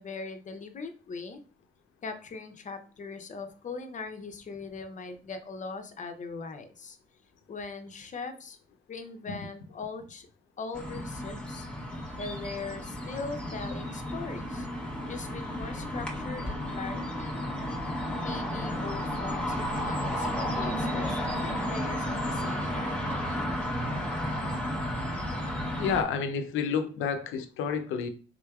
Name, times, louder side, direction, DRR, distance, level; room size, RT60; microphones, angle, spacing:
voice 1, 0.0-1.4 2.0-7.0 7.5-8.6 8.9-10.3 10.6-11.7 12.2-14.7 15.1-17.4 18.1-23.3, left 4 dB, 40° left, 0.6 m, -40 dB
sound 1, 10.7-26.0, equal, 5° left, 0.8 m, -32 dB
voice 2, 25.8-28.1, left 6 dB, 85° left, 0.5 m, -29 dB
3.7 x 3.3 x 2.3 m
cardioid pair, 90°, 20 cm